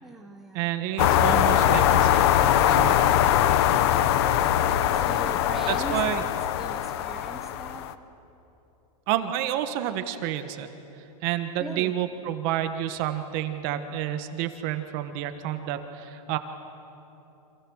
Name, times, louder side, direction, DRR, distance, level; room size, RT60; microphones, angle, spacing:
voice 1, 0.0-0.7 4.5-6.2 6.6-7.8 11.6-11.9, right 2 dB, ahead, 0 dB, 1.0 m, -40 dB
voice 2, 0.5-2.3 2.6-3.1 5.7-6.2 9.1-10.7 11.2-16.4, right 11 dB, 35° right, 9 dB, 1.3 m, -29 dB
sound 1, 1.0-7.9, left 11 dB, 40° left, 0.9 m, -22 dB
29.5 x 26.5 x 6.4 m, 3.0 s
supercardioid pair, 165°, 20 cm